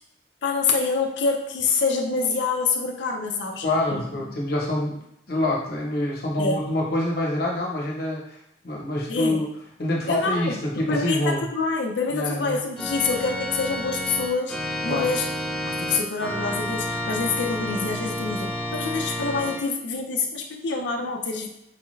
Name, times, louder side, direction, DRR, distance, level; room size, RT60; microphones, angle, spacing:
voice 1, 0.4-4.3 6.4-6.6 9.1-9.4 10.1-15.3 15.6-21.5, left 4 dB, 80° left, 2 dB, 0.5 m, -26 dB
voice 2, 3.6-8.4 8.6-9.4 9.8-11.4 12.1-12.6 14.9-15.1, left 1 dB, 60° left, -3 dB, 1.0 m, -26 dB
Organ, 12.8-19.6, left 1 dB, 5° left, 0.4 m, -30 dB
4.7 x 2.3 x 3.1 m, 0.80 s
head